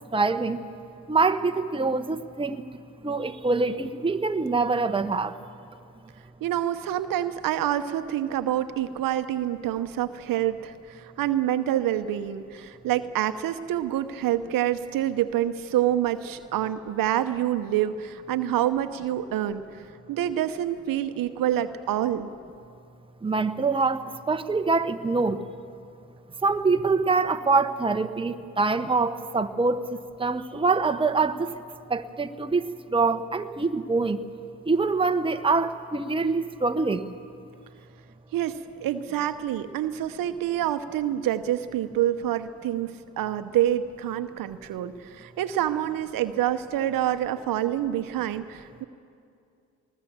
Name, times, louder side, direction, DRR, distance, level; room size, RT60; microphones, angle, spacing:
voice 1, 0.1-0.6 1.1-2.6 3.0-5.3 23.2-25.4 26.4-31.5 31.9-34.2 34.7-37.0, right 4 dB, 15° right, 8 dB, 1.0 m, -25 dB
voice 2, 6.4-19.8 20.1-22.3 38.3-48.8, right 12 dB, 65° right, 10 dB, 0.9 m, -27 dB
20.0 x 19.5 x 7.3 m, 2.4 s
hypercardioid pair, 50°, 36 cm